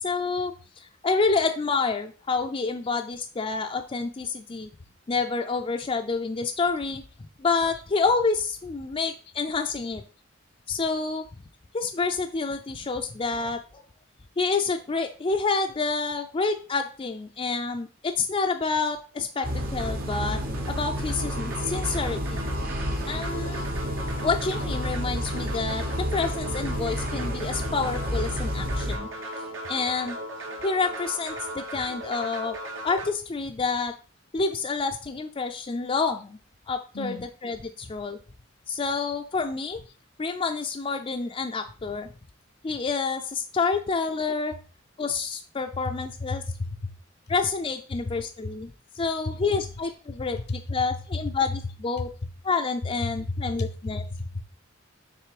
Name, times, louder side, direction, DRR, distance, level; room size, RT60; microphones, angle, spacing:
voice 1, 0.0-4.7 5.1-7.0 7.4-10.0 10.7-11.3 11.7-13.8 14.4-20.4 20.7-22.4 23.0-23.6 24.2-29.1 29.7-30.2 30.6-32.6 32.8-33.9 34.3-36.4 36.7-37.1 37.4-38.2 38.7-39.8 40.2-42.1 42.6-44.6 45.0-46.4 47.3-52.1 52.4-54.0, left 4 dB, 30° left, 0.4 m, -28 dB
sound 1, 19.4-29.0, equal, 50° right, 1.0 m, -30 dB
sound 2, 19.4-33.1, right 1 dB, 80° right, 1.7 m, -37 dB
voice 2, 36.9-37.3 46.3-46.9 47.9-48.0 48.4-48.5 50.3-50.4 51.1-51.2 52.0-52.1 53.0-54.4, left 2 dB, 60° left, 0.7 m, -32 dB
6.8 x 3.2 x 4.8 m
head